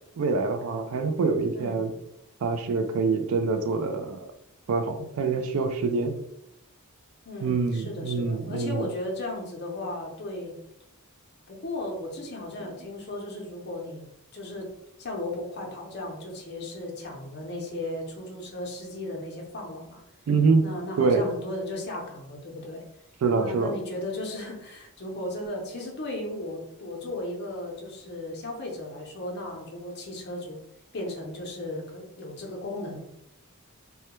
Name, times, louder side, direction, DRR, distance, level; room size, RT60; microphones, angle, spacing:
voice 1, 0.2-1.9 2.4-4.3 4.7-6.2 7.4-8.9 20.3-20.7 21.0-21.2 23.2-23.7, right 4 dB, 65° right, 7 dB, 0.3 m, -25 dB
voice 2, 1.5-1.9 7.3-10.5 11.5-14.0 14.3-14.7 15.0-20.0 20.6-22.8 23.4-30.6 30.9-33.0, left 1 dB, 50° left, 0 dB, 0.6 m, -35 dB
2.2 x 2.2 x 2.9 m, 0.81 s
head